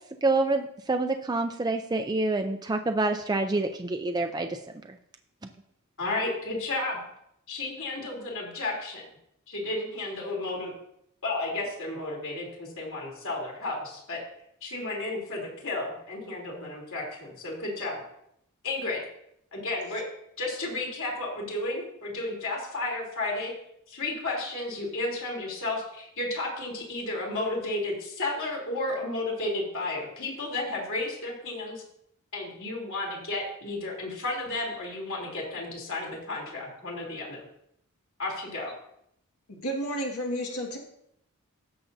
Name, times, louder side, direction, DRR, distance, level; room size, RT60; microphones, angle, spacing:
voice 1, 0.2-4.6, right 2 dB, 20° right, 5 dB, 0.4 m, -27 dB
voice 2, 6.0-7.0 7.5-9.0 9.5-10.7 11.2-14.2 14.6-18.0 18.6-19.0 19.5-20.0 20.4-23.5 23.9-31.8 32.3-37.4 38.2-38.7, left 2 dB, 60° left, -2 dB, 3.3 m, -32 dB
voice 3, 39.5-40.8, equal, 80° left, 0 dB, 1.8 m, -31 dB
16.5 x 6.8 x 2.7 m, 0.75 s
head